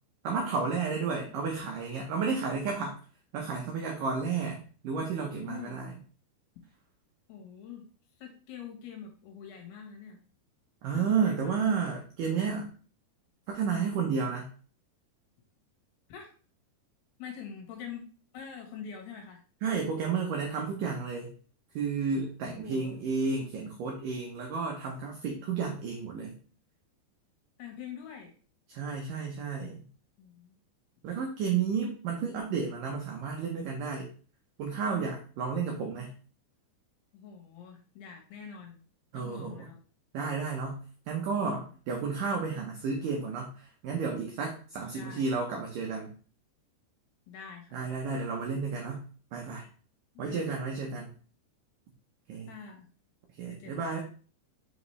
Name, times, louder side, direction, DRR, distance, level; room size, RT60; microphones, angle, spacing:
voice 1, 0.2-3.0 3.3-5.9 10.8-12.7 13.5-14.5 19.6-21.3 21.8-26.4 28.7-29.8 31.0-34.1 34.6-36.1 39.1-39.7 40.1-46.1 47.7-49.1 49.3-49.7 50.2-51.1 52.3-52.5 53.4-54.0, right 5 dB, 80° right, 0 dB, 1.9 m, -32 dB
voice 2, 0.9-1.4 3.3-3.7 5.4-5.8 7.3-7.9 8.2-10.2 10.9-11.6 16.1-16.3 17.2-18.0 18.3-19.4 22.5-22.9 27.6-28.3 30.2-30.6 37.1-38.8 39.1-39.8 44.9-45.3 47.3-48.0 50.1-50.7 52.5-52.9 53.5-53.8, left 7 dB, 70° left, 1 dB, 3.1 m, -45 dB
6.5 x 4.9 x 3.2 m, 0.41 s
omnidirectional pair, 5.1 m